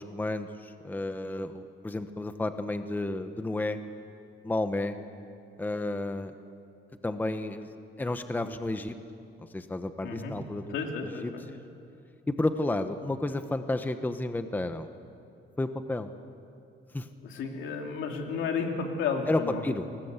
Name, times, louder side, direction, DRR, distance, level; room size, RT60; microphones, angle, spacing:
voice 1, 0.0-3.8 4.4-5.0 5.6-6.3 7.0-7.7 8.0-8.9 9.5-10.8 11.0-11.6 12.3-14.9 15.6-16.1 16.9-17.1 19.3-19.9, left 2 dB, 10° left, 9 dB, 0.9 m, -31 dB
voice 2, 10.7-11.4 17.2-19.6 19.9-20.0, left 5 dB, 75° left, 2 dB, 3.4 m, -32 dB
28.5 x 19.5 x 8.1 m, 2.7 s
cardioid pair, 140°, 20 cm